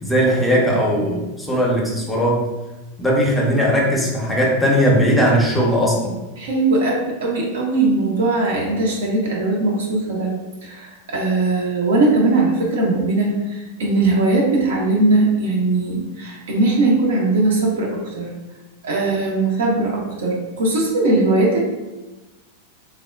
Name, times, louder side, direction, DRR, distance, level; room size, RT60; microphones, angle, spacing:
voice 1, 0.0-2.5 3.0-6.1, equal, 5° left, -4 dB, 0.7 m, -18 dB
voice 2, 6.4-18.3 18.8-21.6, right 2 dB, 60° right, -2 dB, 0.6 m, -19 dB
3.2 x 2.1 x 2.3 m, 1.1 s
figure-of-eight pair, 90°, 0 cm